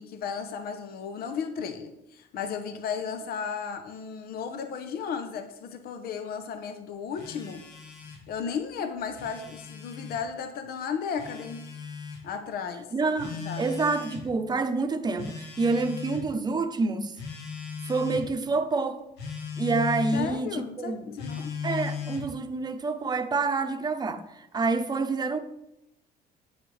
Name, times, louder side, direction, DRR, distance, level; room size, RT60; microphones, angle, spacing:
voice 1, 0.0-7.6 8.3-11.7 12.2-12.9 13.4-13.6 20.1-21.5, left 6 dB, 65° left, 0.8 m, -34 dB
Telephone, 7.2-8.3 9.0-10.2 11.2-12.2 13.2-14.3 15.2-16.3 17.2-18.3 19.2-20.3 21.2-22.3, left 6 dB, 85° left, 1.7 m, -37 dB
voice 2, 12.9-17.2 17.8-19.0 19.6-21.2 21.6-25.4, right 3 dB, 25° right, 0.8 m, -28 dB
9.6 x 8.1 x 3.3 m
cardioid pair, 110°, 17 cm